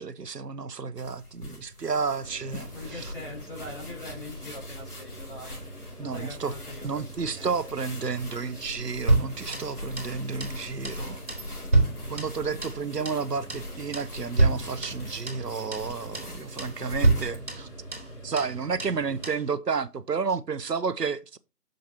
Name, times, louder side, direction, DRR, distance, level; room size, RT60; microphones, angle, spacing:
voice 1, 0.0-3.1 6.0-6.5 6.8-11.2 12.1-17.7 18.2-21.4, right 5 dB, 85° right, 0.8 m, -31 dB
sound 1, 1.0-17.5, left 1 dB, 70° left, 4.0 m, -42 dB
sound 2, 2.2-19.3, right 1 dB, 85° left, 4.3 m, -45 dB
voice 2, 2.7-5.6 6.0-7.7, left 2 dB, 35° left, 4.0 m, -42 dB
sound 3, 9.1-10.2 10.4-10.6 10.8-11.0 11.3-12.8 13.1-13.2 13.5-13.7 13.9-14.1 14.4-15.5 15.7-15.9 16.1-16.3 16.6-16.8 17.0-18.1 18.4-18.5 18.8-19.0 19.2-19.4, right 2 dB, 45° right, 4.3 m, -26 dB
7.8 x 6.5 x 2.9 m
figure-of-eight pair, 170°, 47 cm